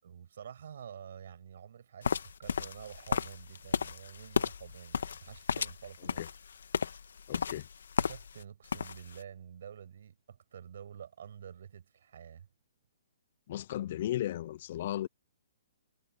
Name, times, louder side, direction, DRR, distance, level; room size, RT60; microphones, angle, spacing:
voice 1, 0.0-6.2 6.8-7.2 8.0-12.5, right 8 dB, 60° right, 7.6 m, -49 dB
sound 1, 2.0-8.4 8.7-9.2, left 6 dB, 80° left, 1.3 m, -34 dB
voice 2, 7.3-7.7 13.5-15.1, left 13 dB, 45° left, 0.4 m, -35 dB
hypercardioid pair, 160°, 0 cm